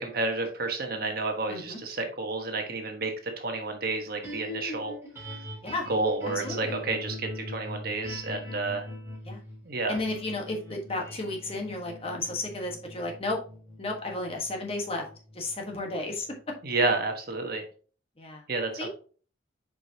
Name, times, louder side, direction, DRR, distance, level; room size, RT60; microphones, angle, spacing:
voice 1, 0.0-4.9 5.9-8.9 9.6-9.9 16.6-17.6 18.5-18.9, right 3 dB, 50° right, 4 dB, 1.2 m, -30 dB
voice 2, 1.5-1.8 5.6-5.9 6.3-6.8 9.2-9.4 9.9-13.4 13.8-15.0 15.3-16.3 18.2-18.4 18.8-18.9, left 2 dB, 30° left, 1 dB, 1.4 m, -33 dB
sound 1, 4.2-16.5, left 2 dB, 15° right, 3.2 m, -41 dB
7.5 x 5.0 x 2.8 m, 0.40 s
head